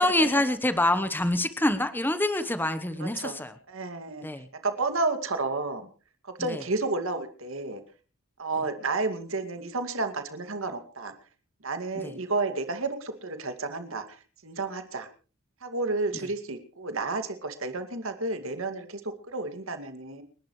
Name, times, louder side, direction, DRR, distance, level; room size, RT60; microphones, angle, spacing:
voice 1, 0.0-3.5 4.2-4.5 6.5-6.6 12.0-12.1, left 1 dB, 10° left, 10 dB, 1.1 m, -26 dB
voice 2, 3.0-3.3 3.7-4.3 4.6-5.9 6.2-7.8 8.4-11.1 11.6-15.1 15.6-19.0 19.3-20.2, right 3 dB, 65° right, 8 dB, 2.4 m, -31 dB
30.0 x 11.5 x 3.2 m, 0.37 s
head